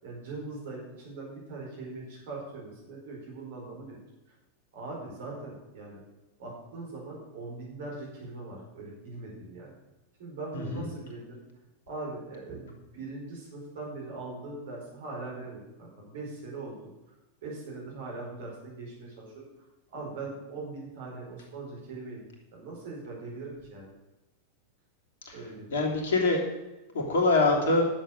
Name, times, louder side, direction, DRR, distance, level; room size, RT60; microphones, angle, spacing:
voice 1, 0.0-4.0 4.7-6.0 6.4-9.7 10.2-11.4 11.9-16.9 17.4-22.2 22.5-23.9 25.3-25.8, right 3 dB, 55° right, -2 dB, 4.6 m, -41 dB
voice 2, 10.5-10.9 25.2-25.3 25.7-26.4 26.9-27.9, left 3 dB, 60° left, 1 dB, 2.9 m, -24 dB
11.0 x 7.5 x 6.6 m, 1.0 s
figure-of-eight pair, 90°, 0 cm